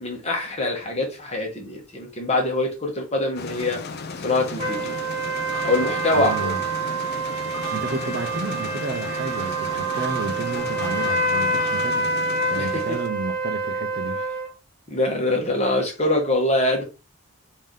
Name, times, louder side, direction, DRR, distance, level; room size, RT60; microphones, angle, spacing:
voice 1, 0.0-3.8 4.2-5.0 5.6-6.3 12.6-13.0 14.9-16.8, left 2 dB, 30° left, 1.1 m, -24 dB
sound 1, 3.4-13.1, left 4 dB, 45° left, 0.4 m, -35 dB
sound 2, 4.6-14.5, right 2 dB, 25° right, 1.7 m, -27 dB
sound 3, 5.4-11.9, right 3 dB, 60° left, 1.1 m, -35 dB
voice 2, 6.1-6.6 7.7-12.1 12.5-14.2, right 3 dB, 50° right, 0.5 m, -31 dB
3.3 x 2.7 x 3.7 m
head